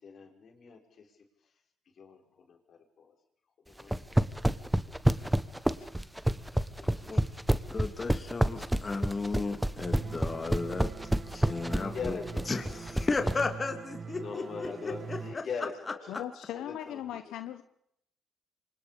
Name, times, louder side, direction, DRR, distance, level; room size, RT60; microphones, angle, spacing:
voice 1, 0.0-1.1 2.0-3.1 3.7-3.9 4.7-5.0 6.8-6.9 8.8-9.5 11.7-13.4 14.2-17.0, left 5 dB, 55° left, 3 dB, 5.9 m, -43 dB
sound 1, 3.8-13.4, right 1 dB, 5° right, 1.3 m, -27 dB
voice 2, 7.7-10.9 11.3-12.2 12.5-15.4, left 3 dB, 30° left, 5 dB, 3.0 m, -34 dB
sound 2, 9.8-15.3, right 5 dB, 45° right, 1.7 m, -43 dB
voice 3, 16.1-17.6, left 11 dB, 85° left, 10 dB, 1.1 m, -39 dB
28.5 x 25.5 x 5.3 m, 0.74 s
cardioid pair, 90°, 0 cm